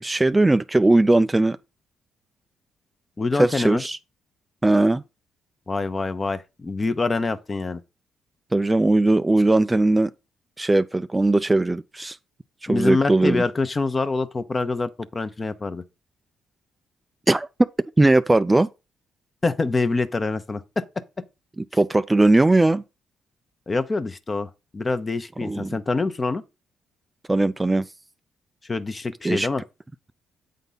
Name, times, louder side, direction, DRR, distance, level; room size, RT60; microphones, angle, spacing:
voice 1, 0.0-1.6 3.4-4.0 4.6-5.0 8.5-10.1 10.6-12.2 12.6-13.4 17.3-17.5 18.0-18.7 21.7-22.8 25.4-25.8 27.3-27.9 29.2-29.5, right 2 dB, 15° right, 0.3 m, -19 dB
voice 2, 3.2-3.8 5.7-7.8 12.7-15.8 19.4-20.8 23.7-26.4 28.7-29.6, left 3 dB, 30° left, 0.7 m, -25 dB
8.2 x 3.8 x 5.6 m
cardioid pair, 90°, 0 cm